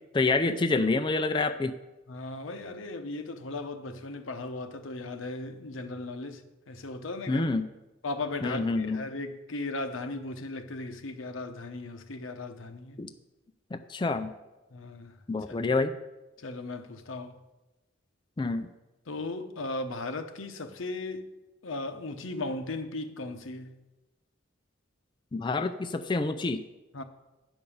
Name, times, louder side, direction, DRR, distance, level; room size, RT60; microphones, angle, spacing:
voice 1, 0.1-1.7 7.3-7.7 8.4-9.0 13.0-13.1 13.7-14.3 15.3-15.9 18.4-18.7 25.3-26.6, left 3 dB, 25° left, 0.4 m, -27 dB
voice 2, 2.1-6.4 6.7-7.5 8.0-13.0 14.7-15.2 16.4-17.4 19.1-21.3 21.6-23.8 26.9-27.0, left 2 dB, 90° left, 0.8 m, -37 dB
9.6 x 5.3 x 7.1 m
head